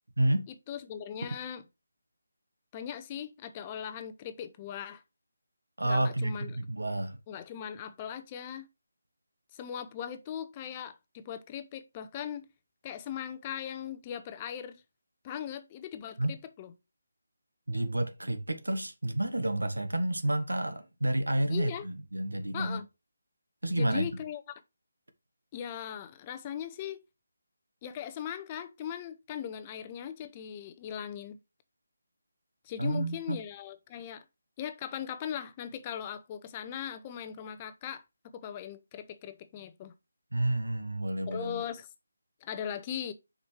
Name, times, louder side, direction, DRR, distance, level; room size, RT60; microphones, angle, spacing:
voice 1, 0.2-0.5 5.8-7.2 16.2-16.4 17.7-22.8 23.6-24.1 32.8-33.4 40.3-41.6, right 1 dB, 80° right, 1.1 m, -30 dB
voice 2, 0.7-1.6 2.7-5.0 5.8-6.6 7.3-8.6 9.5-12.5 12.8-14.8 15.2-16.7 21.5-21.9 22.5-22.8 23.8-24.4 25.5-27.0 27.8-31.4 32.6-34.2 34.6-38.0 38.3-39.9 41.3-41.9 42.4-43.1, left 9 dB, 25° left, 0.6 m, -39 dB
6.9 x 5.2 x 3.3 m
figure-of-eight pair, 155°, 0 cm